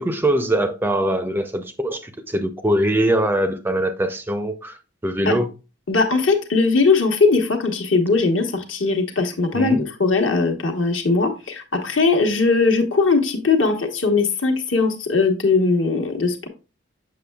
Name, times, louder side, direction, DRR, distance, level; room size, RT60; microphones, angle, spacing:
voice 1, 0.0-5.5 9.5-9.9, right 1 dB, 10° right, 0.4 m, -22 dB
voice 2, 5.9-16.5, left 4 dB, 70° left, 1.1 m, -19 dB
6.8 x 6.3 x 2.3 m
head